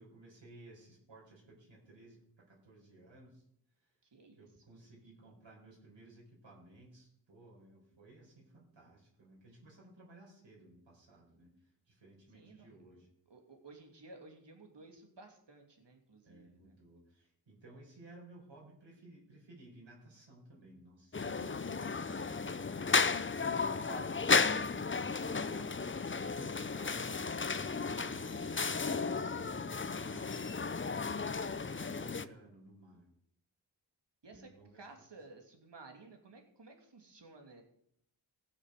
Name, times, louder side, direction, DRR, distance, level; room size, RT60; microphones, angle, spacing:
voice 1, 0.0-3.4 3.8-3.9 4.3-13.1 16.2-22.7 23.4-27.6 27.8-33.1 34.3-34.8, right 2 dB, 85° right, -3 dB, 5.1 m, -57 dB
voice 2, 4.0-4.5 12.3-13.0 13.3-16.8 23.8-24.2 24.8-25.9 34.2-34.5 34.8-37.6, right 3 dB, 70° right, 3 dB, 2.9 m, -55 dB
sound 1, 21.1-32.2, left 4 dB, 25° left, 0.6 m, -34 dB
16.5 x 7.3 x 6.8 m, 0.71 s
cardioid pair, 50°, 44 cm